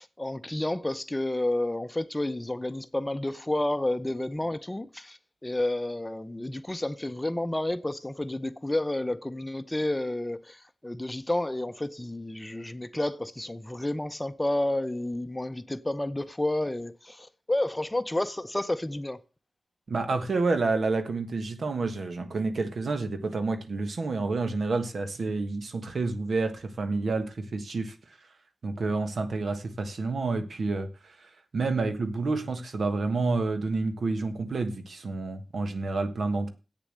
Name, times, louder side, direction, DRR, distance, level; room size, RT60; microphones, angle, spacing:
voice 1, 0.0-19.2, left 1 dB, 15° left, 0.7 m, -30 dB
voice 2, 19.9-27.9 28.6-36.5, right 3 dB, 75° right, 1.4 m, -29 dB
8.3 x 7.0 x 7.8 m
wide cardioid pair, 80°, 0 cm